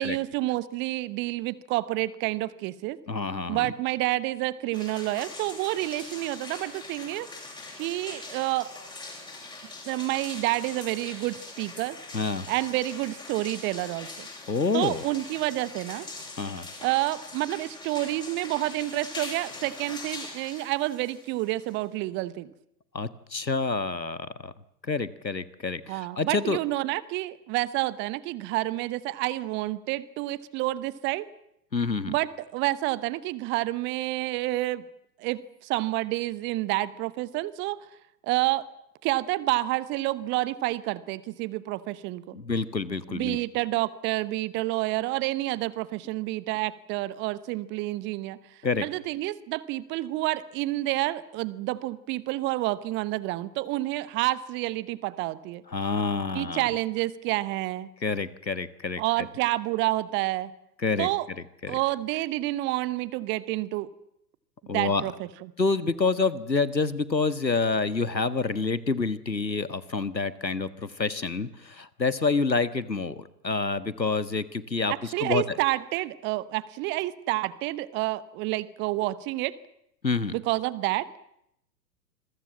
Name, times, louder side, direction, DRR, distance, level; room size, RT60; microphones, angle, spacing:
voice 1, 0.0-3.0 3.5-7.3 7.8-8.7 9.9-12.0 12.5-14.3 14.7-16.1 16.8-22.5 25.9-31.3 32.1-34.8 35.2-37.8 38.2-38.7 39.0-42.4 43.1-55.6 56.3-57.9 59.0-60.5 61.0-61.3 61.7-63.9 64.7-65.5 74.9-79.5 80.3-81.1, right 18 dB, 20° right, 19 dB, 1.0 m, -29 dB
voice 2, 3.1-3.7 12.1-12.5 14.5-15.0 16.4-16.7 22.9-24.5 24.9-26.6 31.7-32.2 42.3-43.4 48.6-48.9 55.7-56.7 58.0-59.0 60.8-61.1 61.6-61.8 64.7-65.0 65.6-74.9 75.2-75.4 80.0-80.3, left 4 dB, 85° left, 15 dB, 1.7 m, -27 dB
sound 1, 4.7-22.0, left 3 dB, 10° left, 7.6 m, -42 dB
27.0 x 22.5 x 7.4 m, 0.76 s
figure-of-eight pair, 105°, 50 cm